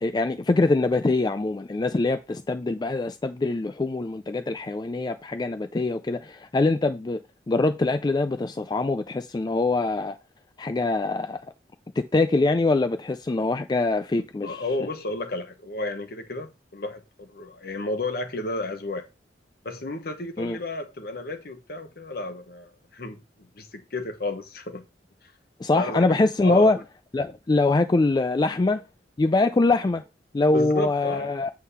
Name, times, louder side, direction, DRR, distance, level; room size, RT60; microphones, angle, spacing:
voice 1, 0.0-7.2 7.5-10.2 10.6-11.4 12.0-14.6 20.4-20.6 25.6-26.8 27.1-28.8 29.2-30.0 30.3-31.5, left 2 dB, 25° left, 0.3 m, -23 dB
voice 2, 14.4-19.1 19.6-24.9 25.7-26.7 30.5-31.3, left 2 dB, 60° left, 1.2 m, -32 dB
8.3 x 3.6 x 5.6 m
head